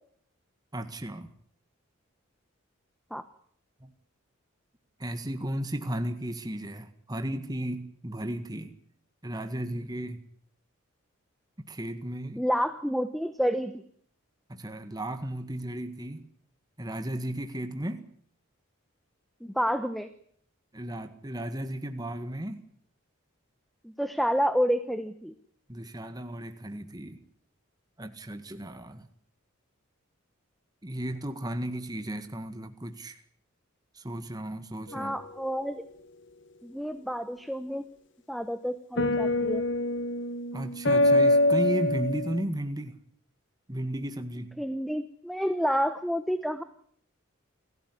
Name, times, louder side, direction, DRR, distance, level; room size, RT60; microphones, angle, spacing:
voice 1, 0.7-1.3 3.8-3.9 5.0-8.7 9.2-10.3 11.7-12.4 14.5-16.3 16.8-18.0 20.7-22.7 25.7-27.2 28.0-29.1 30.8-33.2 33.9-35.2 40.5-43.0 43.7-44.6, right 1 dB, 20° right, 8 dB, 1.8 m, -34 dB
voice 2, 12.4-13.7 19.4-20.1 23.8-25.3 34.9-35.9 36.6-37.8 38.3-39.6 44.6-46.6, equal, ahead, 11 dB, 1.0 m, -29 dB
sound 1, 34.9-35.3 39.0-42.4, left 1 dB, 60° left, 1.8 m, -25 dB
29.0 x 15.0 x 9.9 m, 0.64 s
head